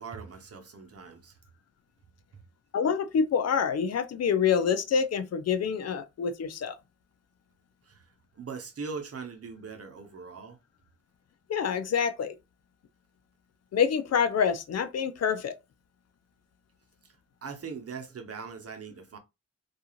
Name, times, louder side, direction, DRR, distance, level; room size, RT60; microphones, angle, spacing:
voice 1, 0.0-1.4 7.8-10.6 17.0-17.2 17.4-19.2, right 5 dB, 55° right, 0.8 m, -41 dB
voice 2, 2.7-6.8 11.5-12.3 13.7-15.6, left 7 dB, 60° left, 0.5 m, -26 dB
2.4 x 2.3 x 2.9 m
cardioid pair, 50°, 29 cm